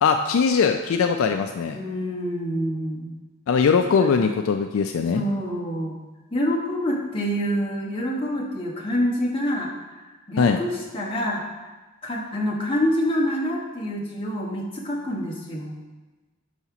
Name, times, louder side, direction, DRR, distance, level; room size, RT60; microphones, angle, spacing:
voice 1, 0.0-1.8 3.5-5.2 10.4-10.6, left 5 dB, 65° left, 6 dB, 0.3 m, -21 dB
voice 2, 1.7-3.1 4.0-4.3 5.1-6.0 6.3-9.7 10.3-11.4 12.0-15.7, equal, 25° left, -4 dB, 1.1 m, -26 dB
5.7 x 4.2 x 5.9 m, 1.2 s
head